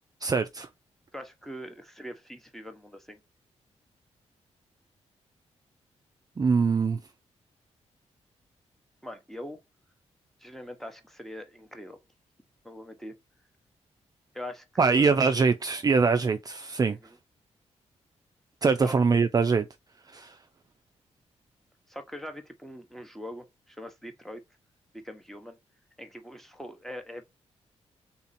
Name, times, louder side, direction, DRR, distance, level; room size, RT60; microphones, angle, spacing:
voice 1, 0.2-0.7 6.4-7.0 14.8-17.0 18.6-19.7 20.1-20.4, right 4 dB, 35° right, 0.4 m, -23 dB
voice 2, 1.1-3.2 9.0-9.6 10.4-12.0 12.6-13.2 14.3-15.2 16.9-17.1 18.8-18.9 21.9-24.4 24.9-25.6 26.0-27.2, equal, 5° left, 1.0 m, -42 dB
3.7 x 2.8 x 4.1 m
cardioid pair, 100°, 12 cm